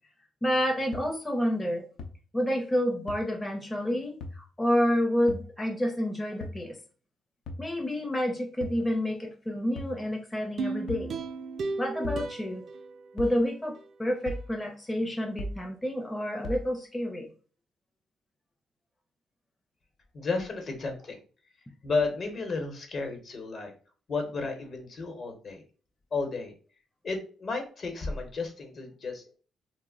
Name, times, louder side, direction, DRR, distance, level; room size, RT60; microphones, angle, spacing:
voice 1, 0.4-1.8 2.3-6.7 7.6-11.1 11.8-12.6 13.1-17.3, equal, 15° left, 1 dB, 0.5 m, -29 dB
sound 1, 0.9-1.0 2.0-2.1 3.1-3.2 4.2-4.4 5.3-5.5 6.4-6.6 7.5-7.7 8.6-8.8 9.8-10.0 10.9-11.1 12.0-12.3 13.2-13.4 14.3-14.5 15.4-15.6 16.4-16.7, left 2 dB, 75° left, 0.5 m, -37 dB
sound 2, 10.6-13.9 14.3-14.4, right 4 dB, 55° right, 0.3 m, -36 dB
voice 2, 20.1-21.2 21.8-23.7 24.1-25.6 26.1-26.5 27.0-29.4, left 3 dB, 50° left, 4 dB, 0.9 m, -32 dB
2.2 x 2.0 x 3.7 m, 0.38 s
cardioid pair, 90°, 0 cm